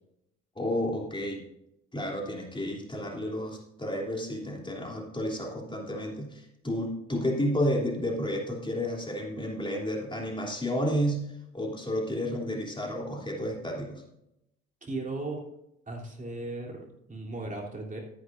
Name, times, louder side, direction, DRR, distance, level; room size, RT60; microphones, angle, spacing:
voice 1, 0.5-1.4 1.9-11.3 11.5-14.0, equal, 15° left, -1 dB, 3.2 m, -31 dB
voice 2, 14.8-15.4 15.9-18.0, right 2 dB, 25° right, -1 dB, 3.3 m, -36 dB
13.0 x 11.0 x 2.6 m, 0.80 s
hypercardioid pair, 60°, 31 cm